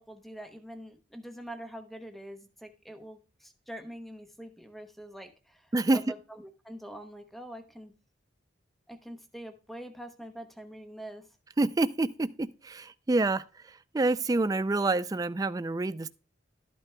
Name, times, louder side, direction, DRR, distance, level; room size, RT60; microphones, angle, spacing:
voice 1, 0.0-7.9 8.9-11.2, right 1 dB, ahead, 0.9 m, -45 dB
voice 2, 5.7-6.0 11.6-16.1, right 2 dB, 20° right, 0.3 m, -27 dB
12.5 x 8.8 x 2.2 m
head